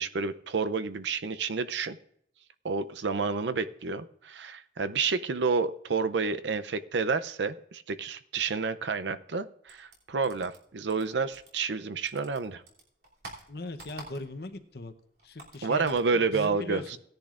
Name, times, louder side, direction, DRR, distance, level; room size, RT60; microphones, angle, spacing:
voice 1, 0.0-2.0 2.6-12.6 15.6-17.0, right 4 dB, 85° right, 12 dB, 0.6 m, -29 dB
sound 1, 9.7-11.8 12.1-14.6 14.8-16.1, right 2 dB, 65° right, 3.0 m, -48 dB
voice 2, 13.5-14.9 15.2-17.0, left 2 dB, 60° left, 8 dB, 0.8 m, -40 dB
17.5 x 10.5 x 2.5 m, 0.69 s
head